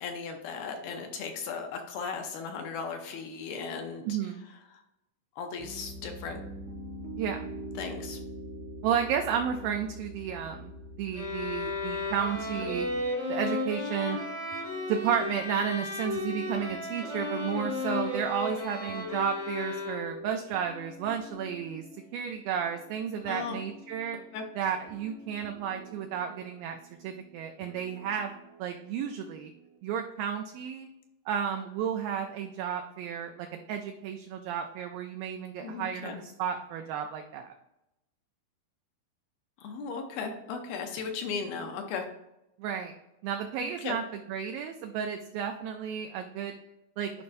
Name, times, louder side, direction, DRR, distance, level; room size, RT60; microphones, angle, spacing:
voice 1, 0.0-4.0 4.7-4.8 5.4-6.4 7.8-8.2 23.3-23.6 24.3-24.4 35.6-36.2 39.6-42.0 43.8-43.9, left 5 dB, 75° left, 3 dB, 2.4 m, -36 dB
voice 2, 4.1-4.5 7.2-7.4 8.8-10.7 11.0-12.9 13.3-14.2 14.9-21.9 22.1-24.2 24.6-26.8 27.0-28.3 28.6-29.5 29.8-30.9 31.3-37.5 42.6-42.9 43.2-44.0 44.3-46.5 47.0-47.1, right 8 dB, 85° right, 4 dB, 2.0 m, -32 dB
Piano, 5.6-13.1, right 1 dB, 70° right, 1.7 m, -43 dB
sound 1, 11.1-20.3, left 2 dB, 40° left, 0.5 m, -34 dB
sound 2, 12.3-29.8, left 1 dB, 20° left, 0.9 m, -52 dB
11.5 x 5.3 x 2.6 m, 0.88 s
omnidirectional pair, 4.7 m